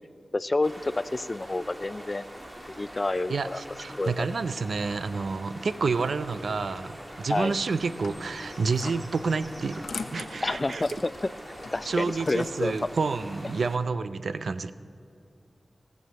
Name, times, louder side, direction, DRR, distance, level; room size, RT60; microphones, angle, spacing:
voice 1, 0.3-2.2 2.7-3.6 4.0-4.3 7.3-7.6 10.4-11.1 11.7-12.7, left 2 dB, 35° left, 17 dB, 0.3 m, -29 dB
sound 1, 0.6-13.8, equal, 20° right, 1.8 m, -43 dB
voice 2, 3.3-9.8 10.1-10.8 11.9-14.7, right 4 dB, 85° right, 13 dB, 0.5 m, -29 dB
sound 2, 7.7-12.8, left 4 dB, 85° left, 0.7 m, -43 dB
17.0 x 7.2 x 7.5 m, 2.6 s
wide cardioid pair, 80°, 0 cm